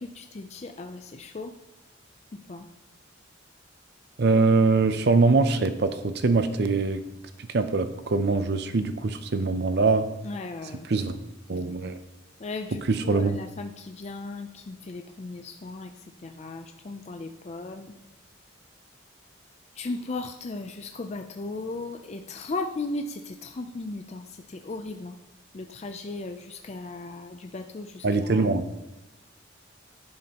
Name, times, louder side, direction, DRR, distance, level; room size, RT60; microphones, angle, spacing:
voice 1, 0.0-1.5 2.3-2.7 10.2-10.9 12.4-17.9 19.8-25.2 25.5-28.5, left 3 dB, 35° left, 5 dB, 0.4 m, -36 dB
voice 2, 4.2-7.0 7.5-10.1 10.9-11.1 11.5-12.0 12.9-13.4 28.0-28.7, right 3 dB, 55° right, 10 dB, 0.5 m, -23 dB
10.5 x 9.5 x 2.9 m, 0.95 s
head